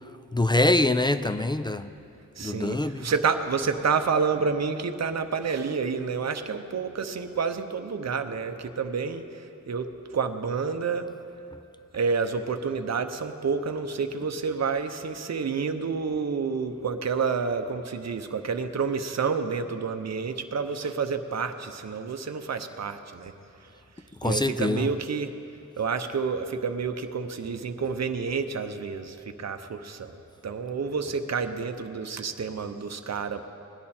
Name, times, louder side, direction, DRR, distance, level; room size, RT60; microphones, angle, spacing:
voice 1, 0.3-1.9 2.4-3.1 24.2-24.9, left 2 dB, 15° left, 12 dB, 0.3 m, -24 dB
voice 2, 2.4-9.2 9.7-9.9 10.1-11.1 11.9-23.3 24.2-25.3 25.8-30.1 30.4-33.4, right 5 dB, 50° right, 7 dB, 0.8 m, -29 dB
18.5 x 10.5 x 4.3 m, 2.7 s
wide cardioid pair, 95°, 34 cm